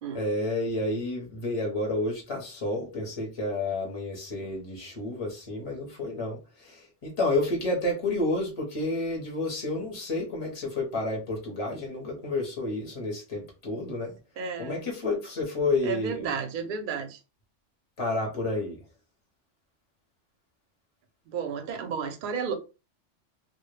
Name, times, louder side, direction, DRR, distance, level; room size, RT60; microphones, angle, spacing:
voice 1, 0.1-14.2 14.6-16.3 18.0-18.8, left 2 dB, 35° left, 0.6 m, -30 dB
voice 2, 14.4-14.9 15.8-17.2 21.3-22.5, right 6 dB, 60° right, 0.5 m, -32 dB
2.1 x 2.0 x 3.1 m
omnidirectional pair, 1.3 m